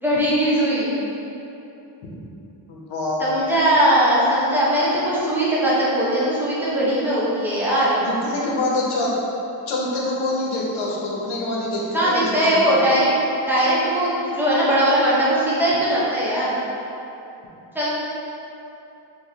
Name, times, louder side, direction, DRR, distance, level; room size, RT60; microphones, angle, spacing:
voice 1, 0.0-0.9 3.2-8.0 11.9-13.1 13.5-16.6 17.7-17.9, right 1 dB, 5° right, -9 dB, 1.0 m, -20 dB
voice 2, 2.7-3.3 8.0-9.1 9.7-12.8, left 2 dB, 85° left, -3 dB, 0.9 m, -25 dB
4.6 x 2.9 x 2.8 m, 2.9 s
cardioid pair, 110°, 47 cm